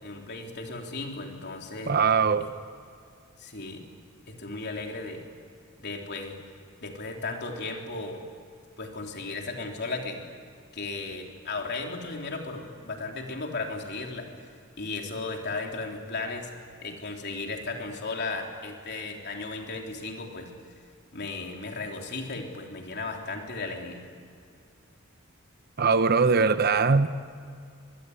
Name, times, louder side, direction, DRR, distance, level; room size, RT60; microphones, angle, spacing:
voice 1, 0.0-1.9 2.4-2.5 3.4-3.8 4.3-5.2 5.8-6.4 6.8-8.2 8.8-10.3 10.7-14.3 14.8-16.5 16.8-20.5 21.1-24.1, left 3 dB, 50° left, 3.6 m, -35 dB
voice 2, 1.9-2.5 25.8-27.1, right 5 dB, 45° right, 0.9 m, -21 dB
24.0 x 21.5 x 9.6 m
head